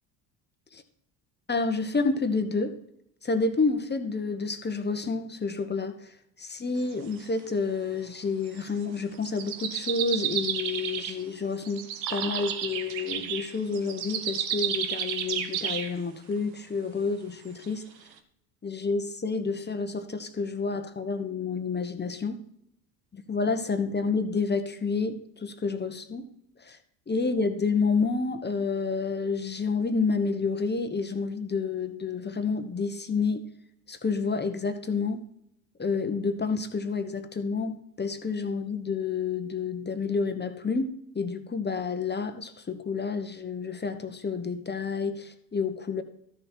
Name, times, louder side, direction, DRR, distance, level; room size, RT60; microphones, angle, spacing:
voice 1, 1.5-2.8 3.2-11.8 12.1-17.8 18.6-22.4 23.1-26.3 26.6-26.8 27.1-33.4 33.9-35.2 35.8-46.0, left 4 dB, 20° left, 8 dB, 1.2 m, -29 dB
sound 1, 6.8-7.4 8.5-8.7 9.2-11.2 11.6-15.9 17.6-17.7 18.1-18.2, right 9 dB, 85° right, 1.0 m, -32 dB
13.0 x 6.6 x 4.4 m, 0.75 s
hypercardioid pair, 65°, 50 cm